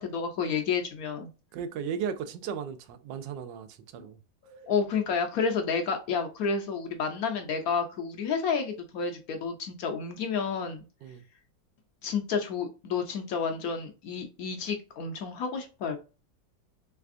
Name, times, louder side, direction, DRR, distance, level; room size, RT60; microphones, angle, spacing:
voice 1, 0.0-1.3 4.0-4.1 4.4-10.8 12.0-16.0, left 5 dB, 70° left, 0.9 m, -30 dB
voice 2, 1.5-4.2 11.0-11.2, right 7 dB, 85° right, 1.3 m, -36 dB
3.3 x 3.3 x 2.4 m
omnidirectional pair, 1.9 m